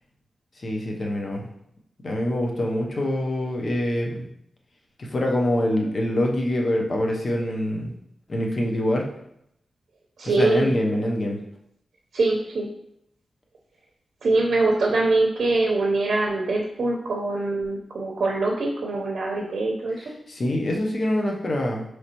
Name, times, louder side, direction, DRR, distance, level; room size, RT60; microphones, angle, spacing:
voice 1, 0.6-1.5 2.0-4.2 5.0-7.9 8.3-9.1 10.4-11.4 20.3-21.8, left 1 dB, 40° left, 0 dB, 0.7 m, -25 dB
voice 2, 10.2-10.7 12.1-12.7 14.2-20.0, right 2 dB, 80° right, -2 dB, 0.6 m, -23 dB
5.1 x 3.2 x 2.9 m, 0.76 s
wide cardioid pair, 175°, 0 cm